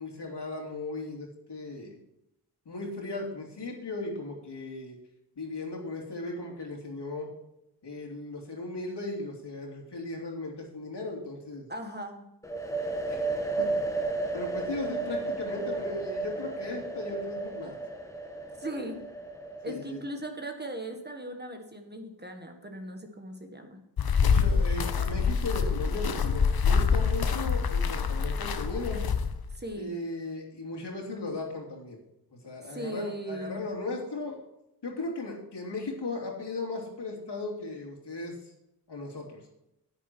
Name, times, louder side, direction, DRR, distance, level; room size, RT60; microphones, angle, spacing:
voice 1, 0.0-2.0 2.6-5.0 5.4-7.3 7.8-11.7 13.1-13.2 13.6-13.8 14.3-17.8 19.6-20.0 24.2-29.1 29.8-32.0 32.3-34.4 34.8-38.4 38.9-39.4, left 2 dB, 75° left, -1 dB, 3.0 m, -37 dB
voice 2, 11.7-12.2 15.1-15.7 18.6-19.0 19.6-23.8 29.5-30.0 32.6-33.6, right 1 dB, 25° right, 4 dB, 1.5 m, -39 dB
sound 1, 12.4-20.1, right 3 dB, 5° left, 1.5 m, -33 dB
sound 2, 24.0-29.5, left 5 dB, 60° left, 0.9 m, -26 dB
10.0 x 9.8 x 4.5 m, 0.86 s
wide cardioid pair, 115°, 41 cm